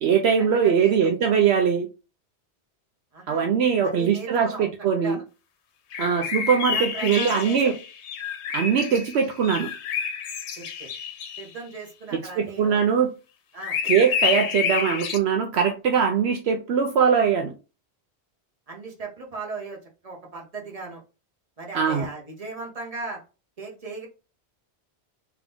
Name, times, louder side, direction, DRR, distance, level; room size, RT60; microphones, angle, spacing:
voice 1, 0.0-1.9 3.3-5.2 6.0-7.7 8.5-9.7 12.1-13.1 13.8-17.5 21.7-22.1, right 7 dB, 75° right, 3 dB, 0.8 m, -21 dB
voice 2, 0.5-1.1 3.1-3.5 3.8-4.7 5.0-5.2 6.0-6.2 6.7-7.8 10.6-10.9 11.4-12.8 13.5-13.8 18.7-21.0 21.6-23.2 23.6-24.1, right 3 dB, 35° right, -1 dB, 1.2 m, -37 dB
sound 1, 5.9-11.4 13.6-15.2, left 7 dB, 80° left, 0.9 m, -29 dB
3.7 x 3.0 x 3.4 m, 0.32 s
omnidirectional pair, 1.1 m